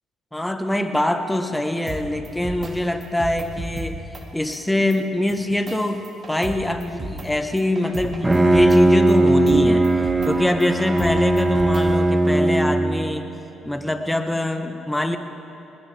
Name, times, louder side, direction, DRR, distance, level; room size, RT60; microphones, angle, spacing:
voice 1, 0.3-9.9 10.2-13.2 13.6-15.2, left 1 dB, 10° left, 7 dB, 1.4 m, -24 dB
sound 1, 1.8-2.7 3.0-3.9 4.1-4.2 4.5-4.6 4.9-5.0 5.3-6.5 6.8-7.2 7.6-8.8 9.1-9.6 9.8-10.3 10.6-11.8, right 3 dB, 40° right, 2.3 m, -33 dB
Bowed string instrument, 8.0-13.1, right 1 dB, 15° right, 1.6 m, -18 dB
20.0 x 20.0 x 3.6 m, 2.9 s
hypercardioid pair, 50°, 0 cm